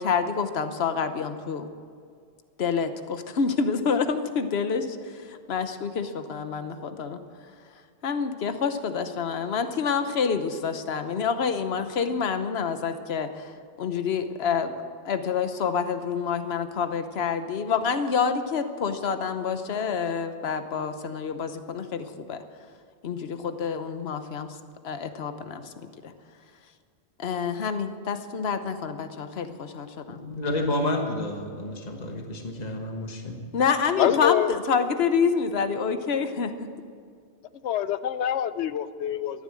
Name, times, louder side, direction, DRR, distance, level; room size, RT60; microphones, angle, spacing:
voice 1, 0.0-1.7 2.6-7.2 8.0-13.5 13.8-22.4 23.0-24.5 24.8-25.7 26.0-26.1 27.2-30.2 33.5-36.5, left 6 dB, 65° left, 9 dB, 1.2 m, -27 dB
voice 2, 30.1-33.4, left 1 dB, 40° left, 2 dB, 1.6 m, -30 dB
voice 3, 34.0-34.5 37.6-39.4, left 10 dB, 90° left, 14 dB, 0.9 m, -25 dB
13.5 x 11.5 x 7.7 m, 2.2 s
omnidirectional pair, 1.1 m